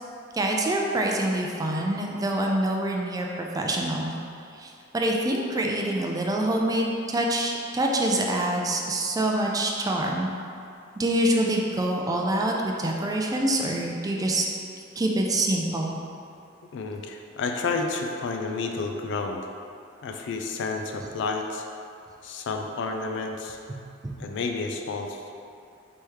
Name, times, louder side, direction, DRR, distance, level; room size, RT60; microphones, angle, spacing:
voice 1, 0.3-4.2 4.5-10.3 11.0-14.4 15.0-16.0 23.7-23.8 24.0-24.1, right 1 dB, 20° right, 0 dB, 0.4 m, -26 dB
voice 2, 16.7-19.5 20.0-21.6 22.2-23.6 24.2-25.2, left 4 dB, 65° left, 4 dB, 0.4 m, -30 dB
3.4 x 3.1 x 4.5 m, 2.5 s
head